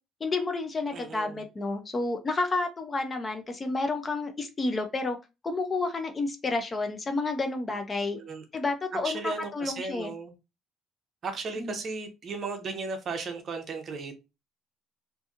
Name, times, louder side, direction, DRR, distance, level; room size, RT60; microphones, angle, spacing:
voice 1, 0.2-5.2 5.4-8.2 8.5-10.1 11.6-11.8, left 3 dB, 20° left, 6 dB, 0.4 m, -30 dB
voice 2, 0.9-1.4 8.1-8.4 9.0-10.3 11.2-14.1, right 4 dB, 40° right, 6 dB, 0.7 m, -35 dB
2.7 x 2.5 x 2.4 m, 0.26 s
cardioid pair, 145°, 0 cm